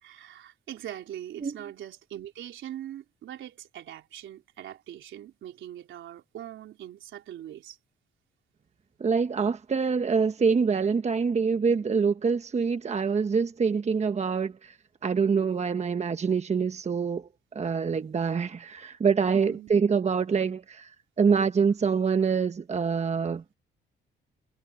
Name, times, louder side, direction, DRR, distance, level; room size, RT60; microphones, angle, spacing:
voice 1, 0.0-7.8 15.3-15.7 19.3-19.7, right 11 dB, 75° right, 3.9 m, -42 dB
voice 2, 9.0-14.7 15.0-17.3 17.5-20.9 21.2-23.5, right 5 dB, 35° right, 1.1 m, -25 dB
cardioid pair, 90°, 20 cm